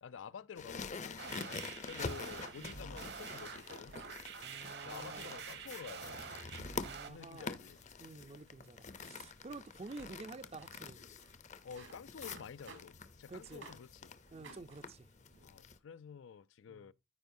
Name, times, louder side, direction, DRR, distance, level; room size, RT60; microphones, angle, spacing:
voice 1, 0.0-4.0 4.8-6.2 7.1-7.8 11.6-14.1 15.4-16.9, left 7 dB, 80° left, 0.4 m, -50 dB
sound 1, 0.6-15.8, left 4 dB, 35° left, 0.6 m, -47 dB
sound 2, 1.2-7.1, right 6 dB, 55° right, 0.9 m, -47 dB
sound 3, 2.2-5.0 5.5-6.0 6.5-6.9 7.2-7.4 7.6-13.9 14.3-15.5, right 3 dB, 85° right, 2.6 m, -59 dB
voice 2, 2.6-3.2 4.4-5.4 6.8-7.6 8.0-11.0 13.3-13.7 14.3-15.1 16.7-16.9, right 3 dB, 30° right, 0.4 m, -50 dB
13.5 x 5.2 x 2.6 m
head